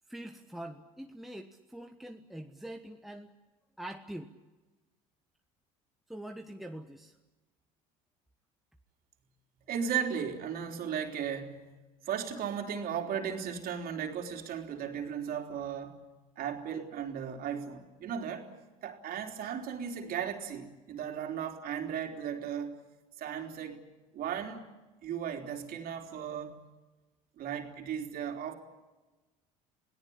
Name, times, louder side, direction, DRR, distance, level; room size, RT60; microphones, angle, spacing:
voice 1, 0.1-3.3 3.8-4.3 6.1-7.1, right 1 dB, ahead, 4 dB, 1.3 m, -44 dB
voice 2, 9.7-11.7 12.0-16.0 16.4-18.5 18.8-22.8 23.2-23.8 24.1-24.7 25.0-26.6 27.4-28.5, right 8 dB, 60° right, 3 dB, 3.6 m, -36 dB
28.5 x 18.0 x 8.7 m, 1.2 s
supercardioid pair, 80°, 17 cm